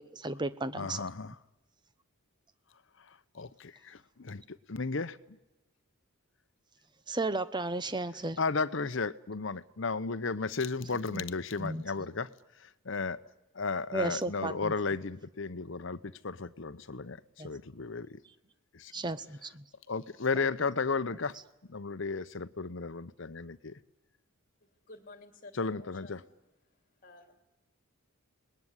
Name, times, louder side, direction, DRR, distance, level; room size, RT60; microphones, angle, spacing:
voice 1, 0.0-1.0 7.1-8.4 10.9-11.2 11.6-12.1 13.9-14.7 17.4-17.5 18.9-19.6 20.4-20.5, right 2 dB, 20° right, 0.9 m, -34 dB
voice 2, 0.8-1.3 3.3-4.4 4.7-5.2 8.4-12.3 12.8-13.2 13.5-17.2 17.4-18.2 18.7-18.9 19.9-21.4 21.7-23.8 25.6-26.2, left 4 dB, 60° left, 0.9 m, -34 dB
voice 3, 24.6-26.3 27.0-27.4, left 2 dB, 40° left, 3.0 m, -52 dB
28.0 x 20.0 x 9.8 m
head